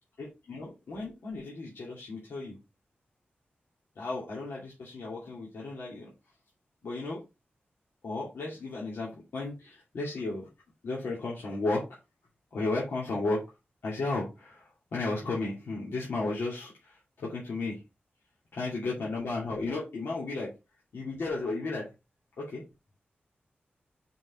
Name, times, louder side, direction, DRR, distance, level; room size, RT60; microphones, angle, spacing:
voice 1, 0.2-2.6 4.0-6.1 6.8-7.2 8.0-10.5 10.8-11.9 12.5-13.4 13.8-17.8 18.5-20.5 20.9-21.9 22.4-22.6, left 3 dB, 90° left, -5 dB, 2.5 m, -34 dB
5.4 x 4.8 x 4.8 m, 0.26 s
wide cardioid pair, 100°, 4 cm